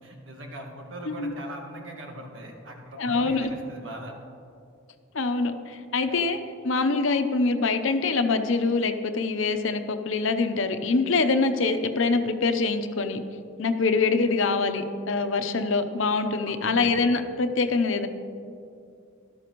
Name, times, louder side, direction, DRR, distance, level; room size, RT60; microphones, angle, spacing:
voice 1, 0.0-4.1 6.0-6.2 16.5-16.8, right 1 dB, 70° right, 2 dB, 1.6 m, -41 dB
voice 2, 3.0-3.5 5.1-13.2 13.6-18.1, left 3 dB, 75° left, 8 dB, 0.7 m, -24 dB
13.0 x 12.0 x 3.1 m, 2.5 s
head